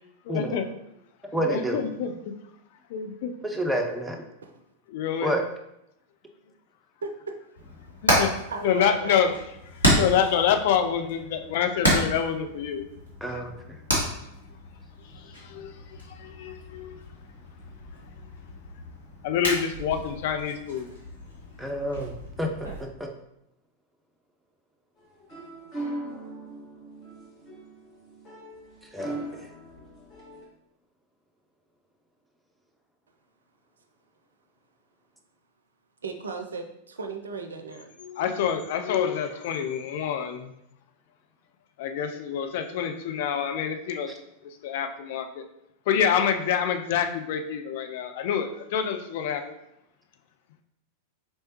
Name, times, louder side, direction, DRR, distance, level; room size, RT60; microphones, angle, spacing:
voice 1, 0.2-0.7 1.3-2.3 2.9-3.3 4.9-5.4 8.0-8.3 8.6-9.4 9.7-12.9 15.0-17.0 19.2-20.9 38.0-40.5 41.8-44.1 44.4-45.5 45.9-49.5, left 8 dB, 50° left, 6 dB, 0.4 m, -27 dB
voice 2, 1.3-1.8 3.4-4.2 5.2-5.4 13.2-13.8 21.6-23.1 28.9-29.4, right 1 dB, 5° right, 1 dB, 0.6 m, -29 dB
voice 3, 7.0-7.3 8.5-9.2 36.0-37.9, right 4 dB, 70° right, 6 dB, 0.4 m, -36 dB
Hammer, 7.6-22.8, equal, 85° left, 1.2 m, -31 dB
sound 1, 25.0-30.4, right 2 dB, 35° left, 1.4 m, -39 dB
4.4 x 3.2 x 2.8 m, 0.82 s
figure-of-eight pair, 90°, 0 cm